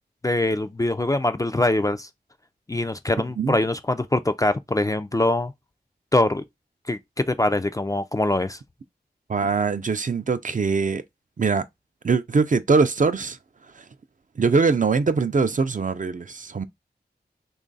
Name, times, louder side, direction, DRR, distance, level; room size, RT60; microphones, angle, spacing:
voice 1, 0.2-2.1 2.7-5.5 6.1-6.4 6.9-7.0 7.3-8.6, left 2 dB, 20° left, 0.3 m, -23 dB
voice 2, 9.3-11.0 11.4-11.6 12.0-13.4 13.7-13.9 14.4-16.6, right 4 dB, 50° right, 0.4 m, -22 dB
3.1 x 2.4 x 3.9 m
wide cardioid pair, 55°, 18 cm